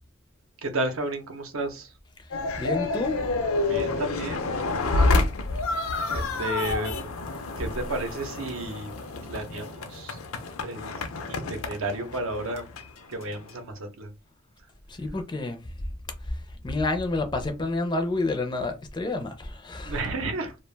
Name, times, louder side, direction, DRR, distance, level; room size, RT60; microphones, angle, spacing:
voice 1, 0.6-1.9 3.6-4.5 6.1-7.1 7.6-9.0 9.2-10.2 10.6-11.0 11.3-12.7 13.1-14.1 19.8-20.6, right 2 dB, 75° right, 0.7 m, -32 dB
sound 1, 2.3-13.6, left 3 dB, 85° left, 0.5 m, -29 dB
voice 2, 2.3-3.2 14.9-15.6 16.3-20.0, left 2 dB, 20° left, 0.4 m, -29 dB
2.4 x 2.2 x 3.2 m
head